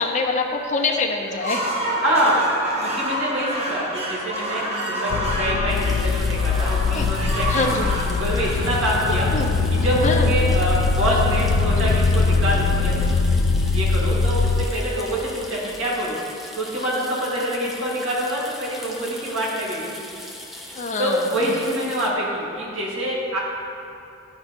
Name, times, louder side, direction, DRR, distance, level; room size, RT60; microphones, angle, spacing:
voice 1, 0.0-1.6 6.9-7.1 7.5-8.0 9.3-9.6 10.0-10.3 20.7-21.4, left 3 dB, 35° left, -1 dB, 0.9 m, -24 dB
sound 1, 1.3-9.4, right 1 dB, 30° right, 1.1 m, -28 dB
voice 2, 2.0-2.5 2.8-7.7 8.0-9.3 9.7-12.9 13.7-16.2 16.6-20.0 21.0-23.4, equal, 75° right, -5 dB, 2.3 m, -25 dB
sound 2, 5.1-14.7, left 4 dB, 65° left, 0.3 m, -21 dB
sound 3, 5.7-22.1, left 1 dB, ahead, 0.7 m, -40 dB
13.5 x 5.0 x 4.5 m, 2.8 s
head